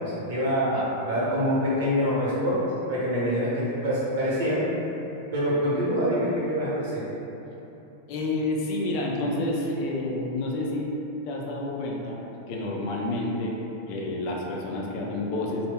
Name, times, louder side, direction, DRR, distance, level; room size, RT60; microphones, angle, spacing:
voice 1, 0.0-2.6 2.9-4.6 5.3-7.0, equal, 55° right, -8 dB, 1.0 m, -25 dB
voice 2, 8.1-10.9 11.3-12.2 12.5-13.6 13.9-15.7, left 2 dB, 45° left, -2 dB, 0.4 m, -29 dB
3.0 x 2.1 x 3.3 m, 3.0 s
figure-of-eight pair, 90°, 0 cm